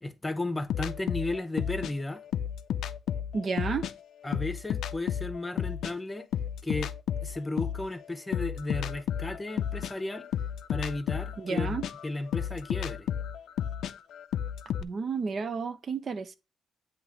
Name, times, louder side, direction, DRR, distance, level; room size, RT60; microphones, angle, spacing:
voice 1, 0.0-2.2 4.2-6.3 6.6-6.9 7.2-10.3 10.7-13.1, left 2 dB, 15° left, 0.9 m, -34 dB
sound 1, 0.7-3.9 4.3-7.9 8.3-14.8, left 9 dB, 80° left, 0.4 m, -32 dB
voice 2, 3.3-3.9 11.4-11.9 14.8-16.4, right 5 dB, 50° right, 0.7 m, -31 dB
8.1 x 2.9 x 6.2 m
cardioid pair, 85°, 0 cm